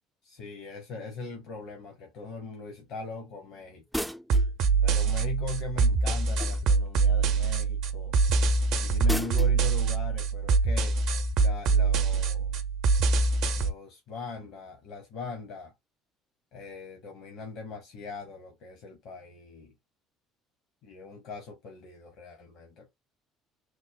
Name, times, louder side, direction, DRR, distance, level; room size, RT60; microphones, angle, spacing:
voice 1, 0.2-4.1 4.8-8.2 8.8-11.0 11.4-12.6 13.6-15.7 16.5-19.7 20.8-22.9, left 4 dB, 60° left, 0.9 m, -41 dB
sound 1, 3.9-4.5 6.4-6.9 9.1-9.6, equal, ahead, 0.3 m, -34 dB
sound 2, 4.3-13.7, right 4 dB, 60° right, 0.6 m, -24 dB
3.2 x 2.0 x 3.7 m
figure-of-eight pair, 55°, 0 cm